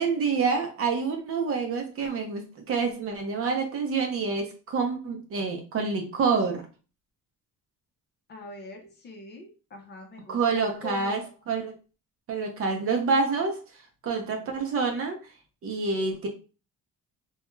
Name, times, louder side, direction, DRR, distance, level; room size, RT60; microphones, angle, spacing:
voice 1, 0.0-6.6 10.3-11.2 11.5-11.7 12.3-13.6 14.0-15.2 15.6-16.3, right 4 dB, 45° right, 3 dB, 0.6 m, -27 dB
voice 2, 8.3-11.3 14.2-14.5, left 2 dB, 30° left, 2 dB, 0.5 m, -44 dB
2.3 x 2.2 x 3.0 m, 0.34 s
cardioid pair, 170°, 33 cm